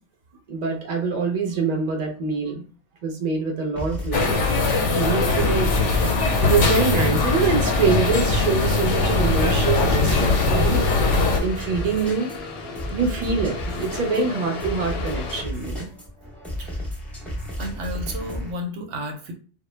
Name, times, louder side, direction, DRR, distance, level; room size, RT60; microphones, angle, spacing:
voice 1, 0.5-2.6 3.0-4.3 4.9-6.0 6.4-11.1 11.4-12.3 12.9-15.9, right 4 dB, 45° right, 2 dB, 0.6 m, -25 dB
sound 1, 3.8-18.5, left 1 dB, ahead, 0.6 m, -33 dB
sound 2, 4.1-11.4, left 3 dB, 90° left, 0.9 m, -21 dB
sound 3, 5.1-15.4, left 4 dB, 65° left, 0.7 m, -36 dB
voice 2, 17.6-19.3, equal, 90° right, 3 dB, 0.9 m, -32 dB
2.2 x 2.0 x 3.1 m, 0.40 s
omnidirectional pair, 1.2 m